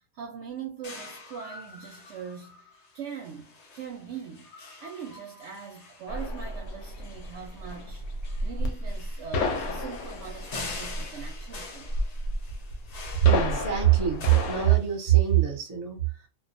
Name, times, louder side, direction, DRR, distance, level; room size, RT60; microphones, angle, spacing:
voice 1, 0.0-4.5 4.8-8.0 8.4-11.9, right 7 dB, 65° right, 0.8 m, -41 dB
sound 1, 0.8-15.3, left 3 dB, 90° left, 0.3 m, -45 dB
sound 2, 6.1-14.8, left 2 dB, 70° left, 0.9 m, -32 dB
voice 2, 13.2-16.0, right 13 dB, 35° right, 0.7 m, -22 dB
2.4 x 2.2 x 2.5 m
omnidirectional pair, 1.4 m